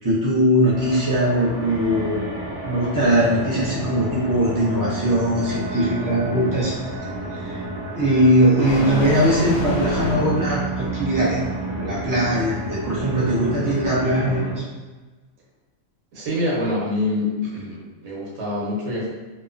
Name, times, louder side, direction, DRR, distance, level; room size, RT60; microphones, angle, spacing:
voice 1, 0.0-2.2 2.6-6.7 7.4-7.6 7.9-11.4 11.7-14.6, equal, 25° right, -7 dB, 0.4 m, -20 dB
sound 1, 0.6-14.5, right 2 dB, 65° right, 1.1 m, -31 dB
sound 2, 4.2-10.6, left 1 dB, 75° left, 1.0 m, -32 dB
voice 2, 16.1-19.1, left 1 dB, 85° right, -5 dB, 1.3 m, -25 dB
3.0 x 2.1 x 2.5 m, 1.2 s
omnidirectional pair, 1.4 m